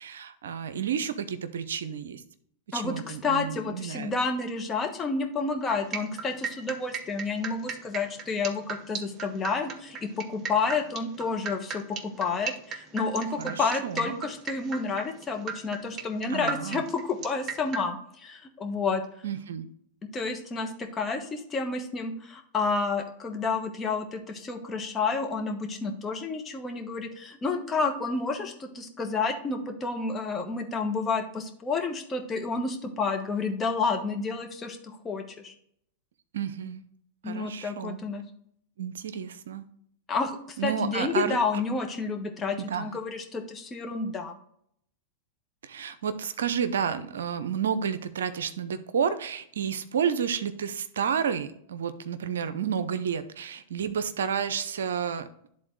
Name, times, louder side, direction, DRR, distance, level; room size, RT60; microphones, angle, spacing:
voice 1, 0.0-2.2 2.7-4.1 13.4-14.2 16.3-16.8 19.2-19.7 36.3-36.8 37.2-38.0 38.8-39.6 40.6-41.4 42.7-42.9 45.6-55.3, right 7 dB, 75° right, 12 dB, 0.6 m, -31 dB
voice 2, 2.7-19.0 20.1-34.8 35.0-35.5 37.2-38.2 40.1-44.4, left 4 dB, 25° left, 4 dB, 1.2 m, -30 dB
sound 1, 5.7-17.9, right 6 dB, 35° right, 0.8 m, -36 dB
10.5 x 3.9 x 3.1 m, 0.69 s
hypercardioid pair, 100°, 0 cm